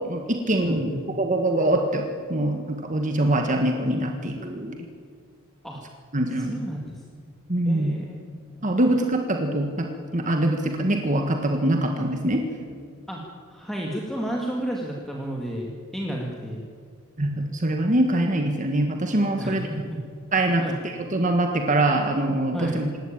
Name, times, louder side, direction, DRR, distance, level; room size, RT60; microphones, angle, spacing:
voice 1, 0.0-0.9 1.2-4.8 6.1-6.6 7.5-7.9 8.6-9.9 10.1-12.4 17.2-19.8 20.3-22.9, right 1 dB, 40° right, 4 dB, 1.7 m, -24 dB
voice 2, 0.6-1.0 5.6-5.8 6.4-7.0 7.6-8.2 8.8-8.9 13.1-13.2 13.5-16.6 19.4-20.0 20.6-20.7 22.5-22.8, right 1 dB, ahead, -2 dB, 2.0 m, -31 dB
26.5 x 12.5 x 8.9 m, 2.1 s
head